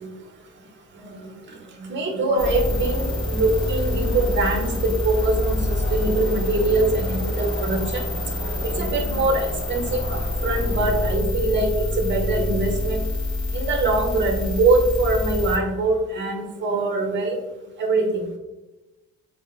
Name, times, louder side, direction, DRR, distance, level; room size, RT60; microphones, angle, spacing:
voice 1, 1.8-5.6 5.9-8.0 8.4-8.5 8.8-10.0 10.4-11.7 12.0-13.0 13.5-17.4 17.8-18.2, right 2 dB, 40° right, 2 dB, 0.7 m, -23 dB
sound 1, 2.3-11.2, equal, 35° left, 0.9 m, -37 dB
sound 2, 2.4-15.6, left 2 dB, 65° left, 1.5 m, -26 dB
3.9 x 2.1 x 3.0 m, 1.1 s
cardioid pair, 140°, 30 cm